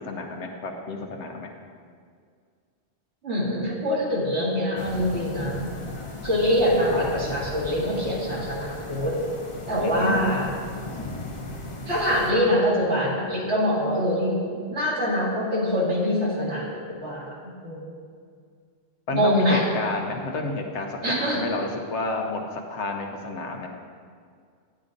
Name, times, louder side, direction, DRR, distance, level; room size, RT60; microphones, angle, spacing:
voice 1, 0.0-1.5 9.8-10.2 19.1-23.7, left 3 dB, 85° left, 2 dB, 1.2 m, -30 dB
voice 2, 3.2-5.7 6.2-9.2 9.7-10.5 11.9-17.3 17.6-17.8 19.1-19.7 21.0-21.4, equal, 75° right, -6 dB, 2.3 m, -24 dB
sound 1, 4.8-12.3, left 2 dB, 35° left, 0.7 m, -36 dB
9.7 x 9.6 x 2.6 m, 2.1 s
omnidirectional pair, 1.2 m